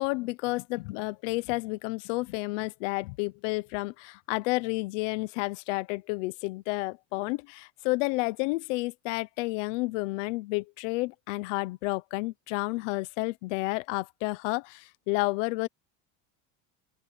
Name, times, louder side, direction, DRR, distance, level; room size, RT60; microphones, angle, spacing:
voice 1, 0.0-15.7, left 23 dB, 75° left, 1.0 m, -31 dB
open air
cardioid pair, 175°, 37 cm